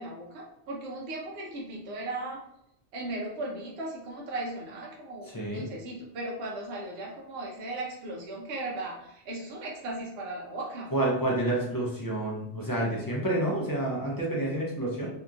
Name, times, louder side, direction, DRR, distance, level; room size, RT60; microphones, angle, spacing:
voice 1, 0.0-2.4 2.9-10.9, right 2 dB, 70° right, -2 dB, 0.8 m, -37 dB
voice 2, 10.9-15.1, right 1 dB, 30° left, -4 dB, 0.4 m, -29 dB
2.8 x 2.5 x 2.3 m, 0.77 s
omnidirectional pair, 1.2 m